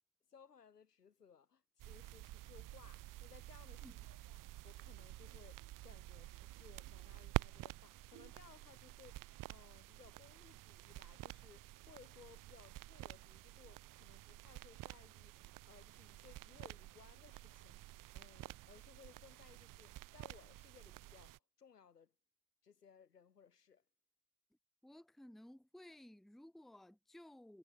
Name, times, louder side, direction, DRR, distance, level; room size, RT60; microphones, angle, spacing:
voice 1, 0.3-4.4 4.6-22.1 22.6-23.8, left 7 dB, 85° left, 5.9 m, -63 dB
sound 1, 1.8-21.4, right 17 dB, 45° right, 1.0 m, -49 dB
voice 2, 24.8-27.6, left 1 dB, ahead, 1.1 m, -57 dB
figure-of-eight pair, 60°, 46 cm